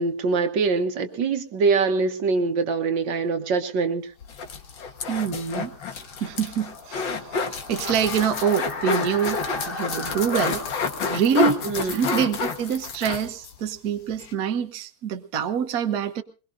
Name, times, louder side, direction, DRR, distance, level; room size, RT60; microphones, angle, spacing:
voice 1, 0.0-4.1 11.6-12.0, right 4 dB, 70° right, 7 dB, 1.7 m, -23 dB
sound 1, 4.2-13.6 13.9-14.0 14.2-14.3, left 4 dB, 75° left, 2.1 m, -29 dB
sound 2, 4.7-13.4, left 3 dB, 30° left, 1.5 m, -38 dB
voice 2, 5.1-5.7 6.2-7.2 7.7-9.4 9.7-10.6 11.1-11.6 11.9-16.2, right 8 dB, 55° right, 6 dB, 1.4 m, -25 dB
22.5 x 21.5 x 2.6 m, 0.36 s
omnidirectional pair, 2.1 m